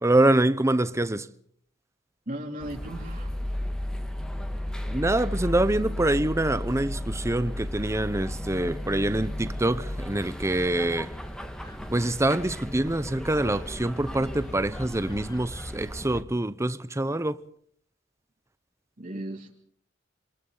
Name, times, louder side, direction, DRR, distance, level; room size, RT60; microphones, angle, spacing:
voice 1, 0.0-1.3 4.9-11.1 11.9-17.4, right 1 dB, 15° right, 0.8 m, -25 dB
voice 2, 2.3-3.3 19.0-19.6, right 1 dB, 45° right, 2.9 m, -36 dB
sound 1, 2.6-16.2, left 1 dB, 5° left, 1.9 m, -34 dB
sound 2, 7.8-15.6, equal, 25° left, 5.1 m, -50 dB
27.5 x 26.0 x 3.9 m
head